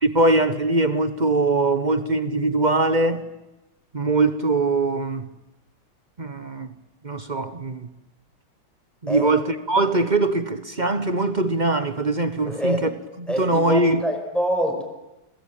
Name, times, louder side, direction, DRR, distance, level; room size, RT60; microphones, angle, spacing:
voice 1, 0.0-3.2 3.9-5.3 6.2-6.7 7.0-7.9 9.0-12.9 13.2-14.0, right 2 dB, 30° right, 0.9 m, -22 dB
voice 2, 12.5-12.9 13.3-14.8, equal, ahead, 5.6 m, -25 dB
30.0 x 22.0 x 9.0 m
omnidirectional pair, 2.3 m